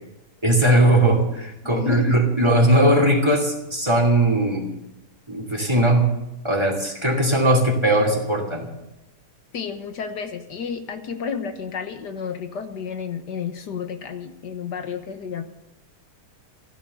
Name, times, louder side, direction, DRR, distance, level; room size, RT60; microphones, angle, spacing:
voice 1, 0.4-4.7 5.3-6.2 6.4-8.7, right 1 dB, 15° right, 3 dB, 2.6 m, -19 dB
voice 2, 1.6-2.2 9.5-15.4, left 6 dB, 85° left, 8 dB, 1.9 m, -31 dB
15.0 x 13.0 x 6.7 m, 0.92 s
omnidirectional pair, 1.8 m